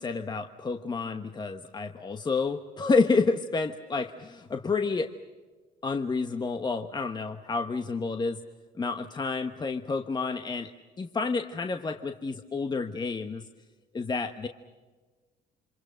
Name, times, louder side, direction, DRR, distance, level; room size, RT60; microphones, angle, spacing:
voice 1, 0.0-5.1 5.8-8.4 8.8-10.7 11.0-13.4 13.9-14.5, left 4 dB, 25° left, 7 dB, 1.2 m, -29 dB
28.5 x 25.5 x 6.4 m, 1.4 s
cardioid pair, 110°, 17 cm